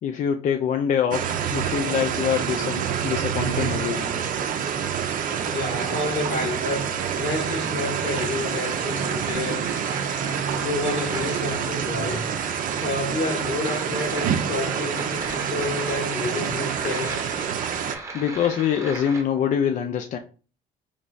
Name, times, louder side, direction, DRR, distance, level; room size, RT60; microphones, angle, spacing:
voice 1, 0.0-4.1 18.1-20.2, left 8 dB, 50° left, 0.4 m, -25 dB
sound 1, 1.1-18.0, right 8 dB, 55° right, 0.5 m, -27 dB
sound 2, 2.5-19.2, right 3 dB, 15° right, 0.9 m, -38 dB
voice 2, 5.5-9.7 10.5-12.2 12.8-17.3, left 2 dB, 75° left, 1.6 m, -29 dB
3.9 x 3.2 x 2.2 m
cardioid pair, 110°, 17 cm